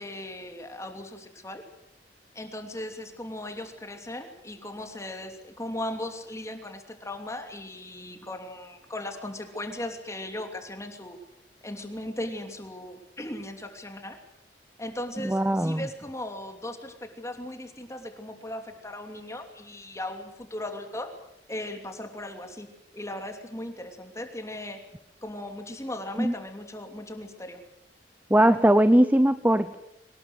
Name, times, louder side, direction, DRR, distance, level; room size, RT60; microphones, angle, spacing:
voice 1, 0.0-1.6 2.3-11.2 11.6-14.2 14.8-21.1 21.5-24.8 25.2-27.6, left 1 dB, 15° left, 5 dB, 2.9 m, -37 dB
voice 2, 15.2-15.9 26.2-26.3 28.3-29.8, right 1 dB, 10° right, 11 dB, 0.8 m, -20 dB
23.5 x 19.5 x 8.0 m, 0.79 s
head